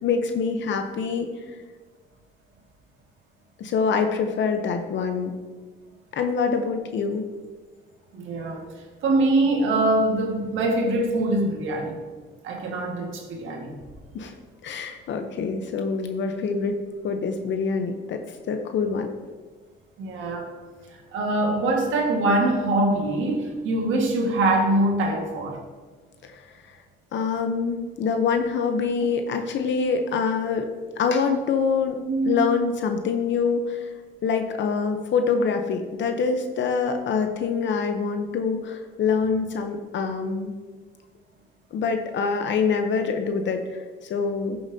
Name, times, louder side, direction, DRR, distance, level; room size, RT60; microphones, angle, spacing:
voice 1, 0.0-1.6 3.6-5.4 6.1-7.3 14.1-14.3 14.6-16.8 17.0-19.1 26.2-26.8 27.1-30.7 31.0-32.0 32.3-33.9 34.2-40.5 41.7-44.6, left 5 dB, 65° left, 6 dB, 0.8 m, -25 dB
voice 2, 8.1-8.6 9.0-12.0 12.4-13.8 20.0-20.5 21.1-25.6 32.1-32.4, right 2 dB, 85° right, 1 dB, 1.7 m, -23 dB
13.0 x 7.0 x 2.8 m, 1.4 s
cardioid pair, 90°, 20 cm